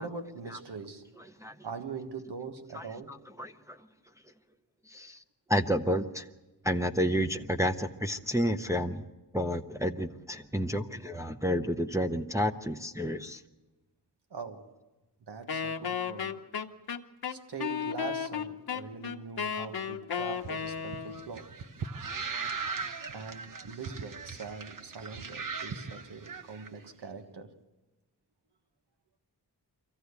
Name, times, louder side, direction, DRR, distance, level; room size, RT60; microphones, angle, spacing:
voice 1, 0.0-1.3 1.6-3.3 4.9-5.0 14.3-14.8 15.2-16.5 17.3-21.6 23.1-27.6, right 5 dB, 85° right, 1.5 m, -42 dB
voice 2, 3.4-3.8 4.9-5.2 5.5-6.3 6.6-9.1 9.3-13.4, equal, 10° right, 0.6 m, -30 dB
Wind instrument woodwind instrument, 15.5-21.3, left 7 dB, 65° left, 1.0 m, -34 dB
sound 1, 20.4-26.7, right 5 dB, 55° right, 1.0 m, -39 dB
24.0 x 15.0 x 8.2 m
wide cardioid pair, 140°, 40 cm